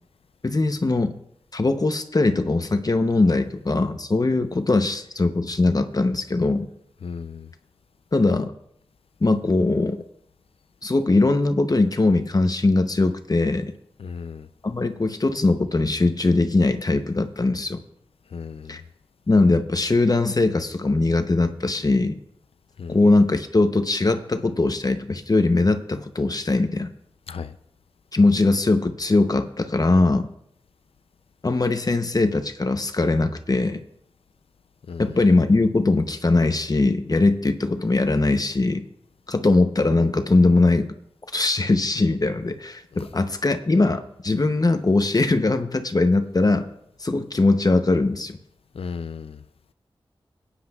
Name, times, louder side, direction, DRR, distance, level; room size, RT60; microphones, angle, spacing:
voice 1, 0.4-1.1 1.5-6.7 8.1-8.5 9.2-10.0 10.8-13.7 14.6-17.8 18.7-18.8 19.3-22.2 22.9-26.9 28.1-30.3 31.4-33.8 35.0-38.8 39.3-40.9 41.3-46.7 47.0-48.4, left 2 dB, 40° left, 8 dB, 0.8 m, -21 dB
voice 2, 7.0-7.5 14.0-14.5 18.3-18.8 22.8-23.0 27.3-27.5 34.9-35.1 48.7-49.4, left 5 dB, 85° left, 11 dB, 0.5 m, -35 dB
18.5 x 9.8 x 2.4 m, 0.74 s
wide cardioid pair, 55°, 10 cm